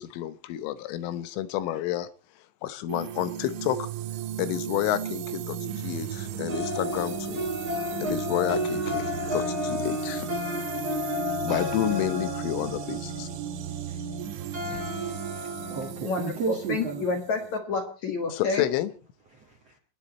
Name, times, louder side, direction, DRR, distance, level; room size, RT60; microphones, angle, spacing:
voice 1, 0.0-2.1 2.6-3.9 4.4-7.4 7.9-10.3 11.4-13.3 18.3-18.9, left 13 dB, 80° left, 3.4 m, -30 dB
sound 1, 2.9-17.6, right 8 dB, 75° right, 3.5 m, -36 dB
sound 2, 6.5-15.9, left 1 dB, 25° right, 2.8 m, -32 dB
voice 2, 15.4-17.1 19.3-19.7, right 5 dB, 50° right, 1.9 m, -34 dB
voice 3, 16.0-18.6, left 3 dB, 55° left, 2.1 m, -29 dB
30.0 x 10.0 x 4.2 m
omnidirectional pair, 5.7 m